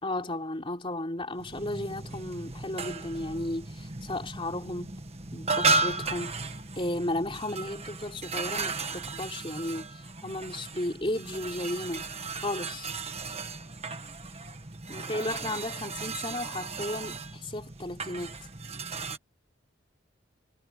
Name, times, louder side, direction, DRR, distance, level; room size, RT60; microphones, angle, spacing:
voice 1, 0.0-5.0 5.3-12.1 12.4-12.9 14.9-18.4, left 1 dB, 25° left, 3.9 m, -34 dB
sound 1, 1.4-19.2, right 3 dB, 30° right, 1.7 m, -35 dB
head